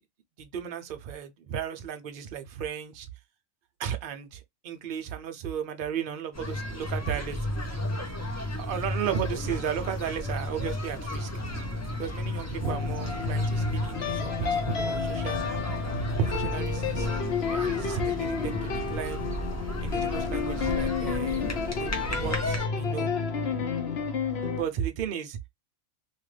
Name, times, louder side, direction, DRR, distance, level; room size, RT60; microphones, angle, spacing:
voice 1, 0.4-3.1 3.8-7.5 8.6-11.3 11.9-15.5 16.2-19.2 19.8-21.4 21.8-23.1 24.5-25.4, right 8 dB, 55° right, 0.6 m, -34 dB
sound 1, 6.3-22.7, left 1 dB, 20° left, 0.5 m, -33 dB
sound 2, 12.6-24.6, left 5 dB, 55° left, 1.0 m, -30 dB
2.8 x 2.5 x 3.2 m
omnidirectional pair, 1.5 m